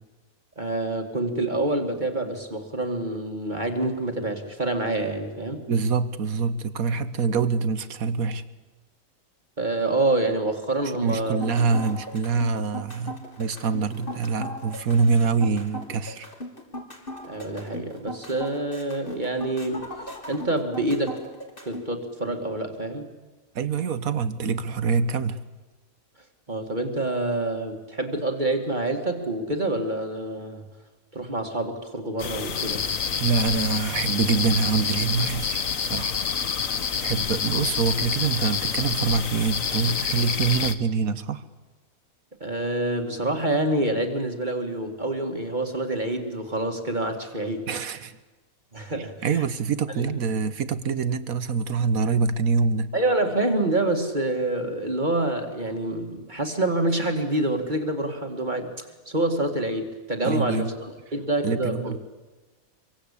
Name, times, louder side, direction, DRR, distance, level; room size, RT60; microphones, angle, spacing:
voice 1, 0.6-5.6 9.6-11.4 11.7-11.8 17.3-21.2 21.6-23.1 26.5-30.6 31.1-32.8 42.4-47.7 48.7-49.4 50.0-50.2 52.9-58.7 59.1-62.0, right 2 dB, 30° right, 4 dB, 2.5 m, -27 dB
voice 2, 5.7-8.4 11.0-16.3 23.5-25.4 33.2-36.2 37.0-41.4 47.7-48.2 49.2-52.9 60.2-60.7 61.4-62.0, right 5 dB, 75° right, 13 dB, 1.7 m, -25 dB
sound 1, 11.2-21.8, equal, 35° left, 4.2 m, -37 dB
sound 2, 32.2-40.8, left 7 dB, 65° left, 1.6 m, -27 dB
26.0 x 24.0 x 8.6 m, 1.2 s
omnidirectional pair, 1.5 m